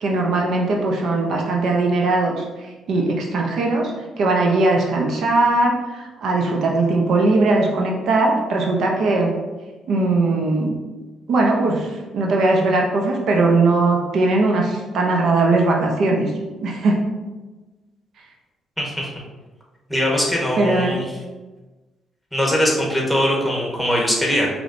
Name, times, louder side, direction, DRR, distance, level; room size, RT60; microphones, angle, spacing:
voice 1, 0.0-3.9 4.2-9.3 9.9-10.8 11.3-16.3 16.6-17.0 20.6-21.0, right 2 dB, 70° right, 0 dB, 0.6 m, -19 dB
voice 2, 18.8-19.1 19.9-21.1 22.3-24.5, equal, 5° left, -2 dB, 1.2 m, -21 dB
4.9 x 3.1 x 2.6 m, 1.2 s
cardioid pair, 75°, 0 cm